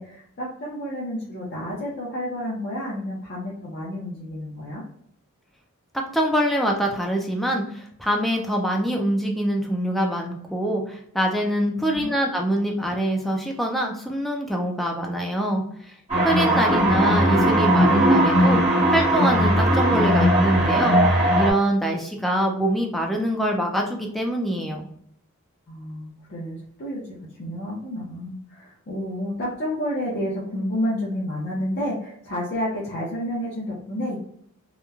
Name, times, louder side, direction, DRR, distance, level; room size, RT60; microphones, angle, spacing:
voice 1, 0.0-4.8 11.7-12.1 25.7-27.0 27.4-34.2, equal, 50° left, -6 dB, 0.6 m, -30 dB
voice 2, 6.1-15.9 16.2-18.6 18.9-24.9, right 1 dB, ahead, 0 dB, 0.3 m, -24 dB
sound 1, 16.1-21.5, right 1 dB, 30° right, 1.0 m, -18 dB
2.9 x 2.2 x 2.3 m, 0.68 s
head